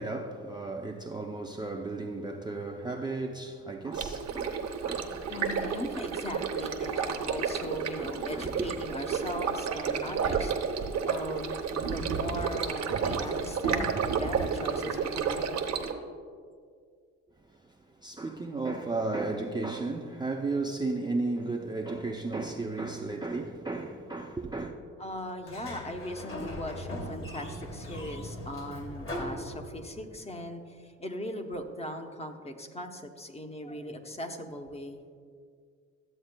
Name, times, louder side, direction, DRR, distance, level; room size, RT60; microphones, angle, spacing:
voice 1, 0.0-5.6 6.8-7.7 8.0-8.7 17.5-17.8 18.0-24.7, right 3 dB, 15° right, 0.4 m, -35 dB
Stream, 3.9-15.9, right 6 dB, 60° right, 0.8 m, -31 dB
voice 2, 5.3-15.6 25.0-35.1, left 1 dB, 20° left, 0.7 m, -39 dB
Sliding door, 25.4-30.1, left 1 dB, 45° left, 2.1 m, -39 dB
13.0 x 7.7 x 2.2 m
cardioid pair, 90°, 30 cm